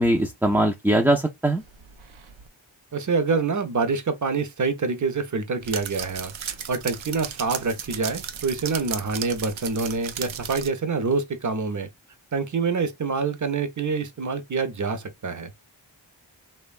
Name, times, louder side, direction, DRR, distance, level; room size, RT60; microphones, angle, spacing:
voice 1, 0.0-1.6, right 1 dB, 5° right, 0.3 m, -21 dB
sound 1, 1.6-2.5 5.6-10.7, right 8 dB, 85° right, 0.5 m, -35 dB
voice 2, 2.9-6.3 6.7-11.9 12.3-15.5, right 4 dB, 40° right, 0.6 m, -26 dB
2.9 x 2.2 x 2.4 m
cardioid pair, 40°, 46 cm